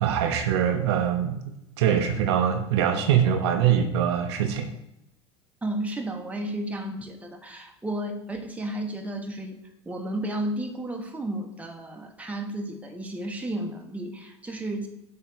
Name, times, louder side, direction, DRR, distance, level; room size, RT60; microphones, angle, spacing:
voice 1, 0.0-1.4 1.8-4.7, right 9 dB, 65° right, 5 dB, 0.8 m, -23 dB
voice 2, 5.6-9.6 9.8-14.9, right 1 dB, 10° right, 2 dB, 1.2 m, -33 dB
7.8 x 3.3 x 6.3 m, 0.82 s
figure-of-eight pair, 75°, 15 cm